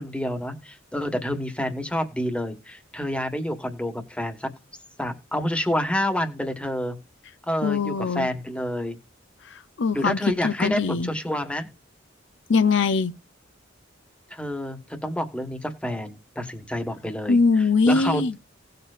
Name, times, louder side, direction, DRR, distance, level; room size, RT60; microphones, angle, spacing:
voice 1, 0.0-4.5 5.0-7.0 7.5-9.0 9.9-11.7 14.3-18.3, left 1 dB, 5° left, 1.4 m, -28 dB
voice 2, 7.6-8.3 9.5-10.2 10.4-11.1 12.5-13.1 17.3-18.3, left 4 dB, 65° left, 0.6 m, -22 dB
18.0 x 6.7 x 2.4 m
head